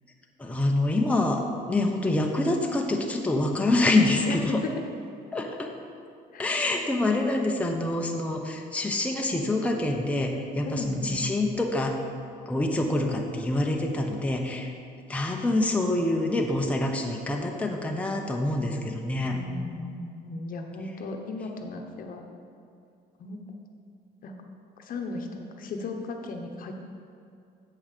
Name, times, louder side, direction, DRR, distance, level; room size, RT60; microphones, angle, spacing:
voice 1, 0.4-4.6 5.3-5.7 6.4-12.0 12.5-14.7 15.1-19.4, left 2 dB, 10° left, 1 dB, 0.8 m, -26 dB
voice 2, 4.3-4.8 6.3-6.4 10.6-11.2 19.3-22.3 23.2-23.4 24.2-24.3 24.8-26.7, left 3 dB, 55° left, 3 dB, 1.0 m, -36 dB
7.6 x 5.4 x 6.6 m, 2.4 s
cardioid pair, 110°, 17 cm